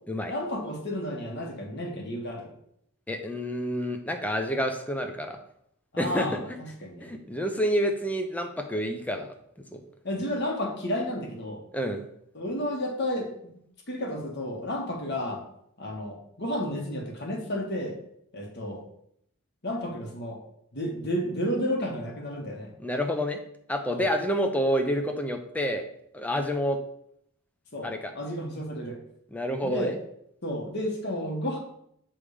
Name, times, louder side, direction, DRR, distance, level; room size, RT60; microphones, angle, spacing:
voice 1, 0.3-2.5 5.9-7.1 10.0-11.6 12.3-13.6 13.9-15.4 15.8-17.9 18.3-18.8 19.6-20.4 20.7-22.7 23.9-24.1 27.7-29.0 29.6-29.9 30.4-31.6, equal, 50° left, 1 dB, 1.5 m, -32 dB
voice 2, 3.1-5.4 6.0-6.3 7.0-9.3 9.7-9.8 11.7-12.0 22.8-23.4 23.7-25.9 26.1-26.8 27.8-28.1 29.3-29.9, equal, 5° left, 5 dB, 0.6 m, -28 dB
8.3 x 3.6 x 4.9 m, 0.73 s
head